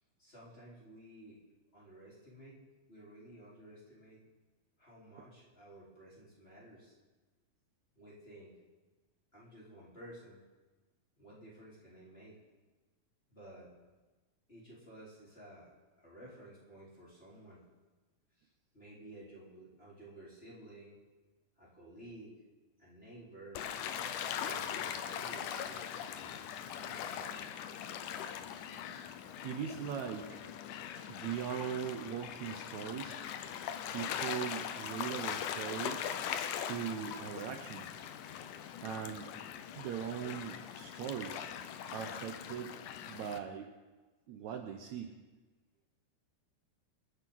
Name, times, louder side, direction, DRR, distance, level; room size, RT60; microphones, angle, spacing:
voice 1, 0.2-1.4 1.7-2.6 2.9-4.2 4.8-7.0 8.0-8.6 9.3-10.4 11.2-12.4 13.3-13.7 14.5-15.7 16.0-17.6 18.4-21.0 21.6-22.4 22.8-23.6 24.3-26.4 26.8-27.5, right 1 dB, 15° left, -7 dB, 3.8 m, -54 dB
Gull seagull / Waves surf, 23.5-43.4, left 9 dB, 75° left, 2.0 m, -41 dB
voice 2, 29.4-30.4 31.1-33.2 33.9-36.0 36.6-38.0 38.8-39.4 39.7-41.4 41.9-42.7 43.1-43.7 44.3-45.1, right 8 dB, 85° right, 4 dB, 1.6 m, -40 dB
26.0 x 11.0 x 3.9 m, 1.3 s
omnidirectional pair, 4.3 m